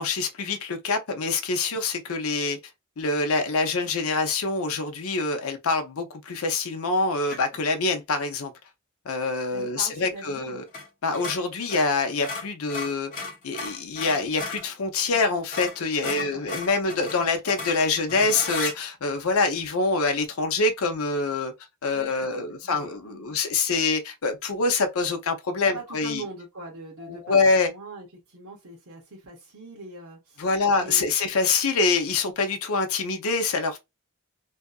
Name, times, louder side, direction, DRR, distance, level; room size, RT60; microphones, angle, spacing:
voice 1, 0.0-2.6 3.0-8.5 9.1-10.6 11.0-21.5 21.8-26.2 27.0-27.7 30.4-33.8, left 4 dB, 70° left, 0.6 m, -25 dB
sound 1, 7.3-7.6 10.7-10.9 11.1-14.7 15.1-15.2 15.5-18.8, left 3 dB, 40° left, 0.9 m, -35 dB
voice 2, 9.5-10.6 16.0-16.4 21.9-23.2 25.7-30.5 30.8-31.0, right 2 dB, 75° right, 0.8 m, -42 dB
2.7 x 2.4 x 2.2 m
head